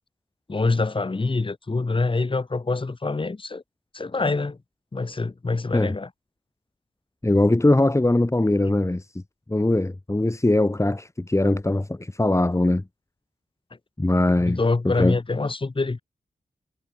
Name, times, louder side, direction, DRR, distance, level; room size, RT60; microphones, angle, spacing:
voice 1, 0.5-3.6 3.9-4.6 4.9-6.1 14.4-16.0, left 3 dB, 35° left, 1.7 m, -25 dB
voice 2, 7.2-9.2 9.5-12.8 14.0-14.6 14.8-15.2, left 2 dB, 20° left, 2.2 m, -21 dB
wide cardioid pair, 85°, 15 cm